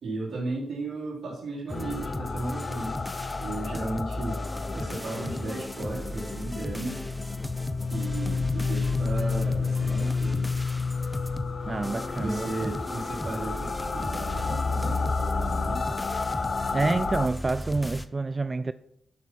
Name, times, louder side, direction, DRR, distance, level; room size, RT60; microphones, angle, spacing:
voice 1, 0.0-3.0 3.4-4.4 4.7-7.1 7.9-10.5 12.2-16.0, right 2 dB, 65° right, 3.9 m, -35 dB
sound 1, 1.7-17.3, left 4 dB, 50° left, 0.6 m, -31 dB
sound 2, 1.7-18.1, left 1 dB, 10° left, 0.8 m, -37 dB
sound 3, 8.1-15.1, left 2 dB, 35° left, 1.1 m, -41 dB
voice 2, 11.7-12.8 16.7-18.7, right 3 dB, 40° right, 0.3 m, -28 dB
12.0 x 5.8 x 4.6 m
supercardioid pair, 45°, 0 cm